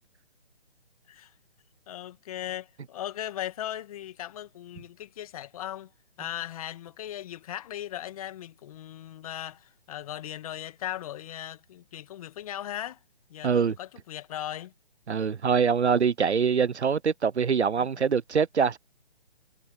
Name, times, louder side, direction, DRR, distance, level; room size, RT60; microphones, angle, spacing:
voice 1, 1.9-5.9 6.2-13.0 13.3-14.7 17.8-17.9, left 12 dB, 35° left, 2.0 m, -38 dB
voice 2, 13.4-13.7 15.1-18.8, right 6 dB, 75° right, 0.9 m, -24 dB
figure-of-eight pair, 145°, 33 cm